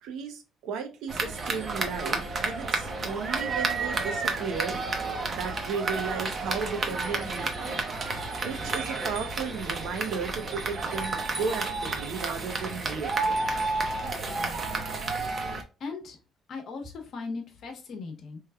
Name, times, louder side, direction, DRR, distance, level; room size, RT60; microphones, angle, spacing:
voice 1, 0.0-4.8 5.4-7.8 8.4-13.4, right 5 dB, 75° right, 6 dB, 0.8 m, -35 dB
sound 1, 1.1-15.6, right 3 dB, 30° right, 0.7 m, -31 dB
voice 2, 14.4-14.9 15.8-16.2 16.5-18.4, left 4 dB, 50° left, 4 dB, 0.9 m, -38 dB
4.4 x 3.2 x 2.3 m, 0.32 s
cardioid pair, 160°, 0 cm